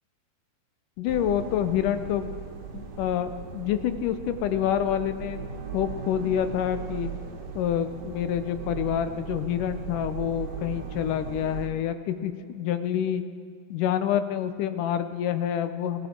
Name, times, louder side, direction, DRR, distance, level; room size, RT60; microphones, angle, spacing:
voice 1, 1.0-2.3 2.7-5.5 5.7-7.1 7.6-13.2 13.7-16.1, left 10 dB, 80° left, 11 dB, 2.3 m, -27 dB
sound 1, 1.1-11.7, right 7 dB, 60° right, 2.2 m, -38 dB
20.5 x 12.5 x 4.4 m, 2.3 s
omnidirectional pair, 3.7 m